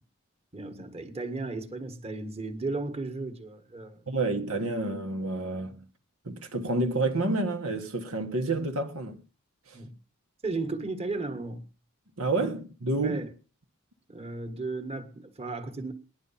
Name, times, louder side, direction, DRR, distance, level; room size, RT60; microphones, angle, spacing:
voice 1, 0.5-4.1 9.7-10.0 10.4-11.6 13.0-13.3 14.1-15.9, right 3 dB, 30° right, 1.7 m, -35 dB
voice 2, 4.1-5.9 6.2-9.2 9.7-9.8 12.2-13.2, right 2 dB, 80° right, 1.7 m, -29 dB
19.5 x 11.5 x 5.7 m
head